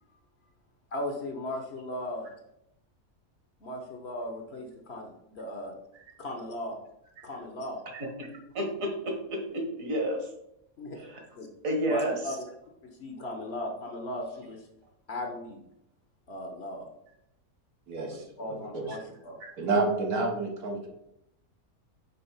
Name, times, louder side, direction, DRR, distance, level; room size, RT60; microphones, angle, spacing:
voice 1, 0.9-2.3 3.6-5.7 6.2-6.8 7.2-7.8 10.8-11.1 11.4-11.5 11.9-12.4 13.0-14.6 15.1-15.6 16.3-16.9 18.1-19.4 20.7-20.8, left 1 dB, 50° left, 2 dB, 1.0 m, -37 dB
voice 2, 7.9-8.3 8.5-10.3 11.0-11.2 11.6-12.2 18.9-19.0, right 1 dB, 65° right, 2 dB, 1.7 m, -31 dB
voice 3, 17.9-19.0 19.6-20.9, right 3 dB, 80° right, 2 dB, 1.6 m, -29 dB
5.8 x 3.5 x 5.5 m, 0.81 s
omnidirectional pair, 1.6 m